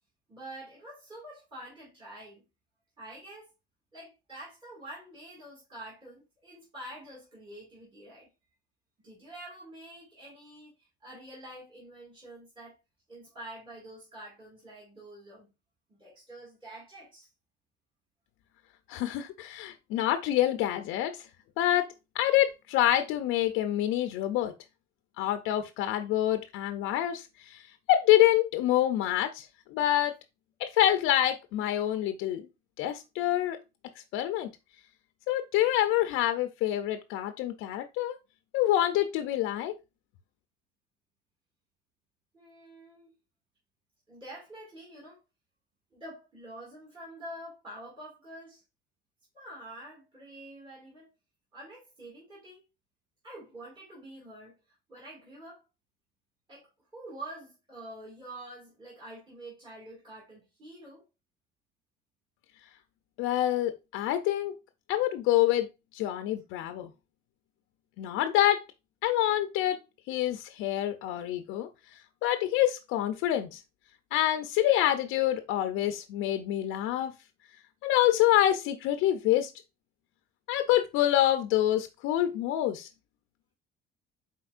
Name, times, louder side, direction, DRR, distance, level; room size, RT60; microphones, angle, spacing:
voice 1, 0.3-2.4 3.0-3.5 3.9-8.3 9.0-12.8 13.1-15.5 15.9-17.3 42.3-43.1 44.1-45.2 45.9-48.6 49.3-51.1 51.5-52.7 53.2-55.6 56.5-61.0, right 1 dB, 25° right, 2.0 m, -47 dB
voice 2, 18.9-21.2 21.6-24.5 25.2-27.6 27.9-30.1 30.6-32.5 32.8-33.6 34.1-34.5 35.3-38.2 38.5-39.7 63.2-64.5 64.9-65.7 65.9-66.9 68.0-68.6 69.0-69.8 70.1-71.7 72.2-73.6 74.1-77.1 77.8-79.5 80.5-82.9, left 13 dB, 75° left, 0.5 m, -26 dB
4.3 x 4.0 x 2.4 m
cardioid pair, 125°, 21 cm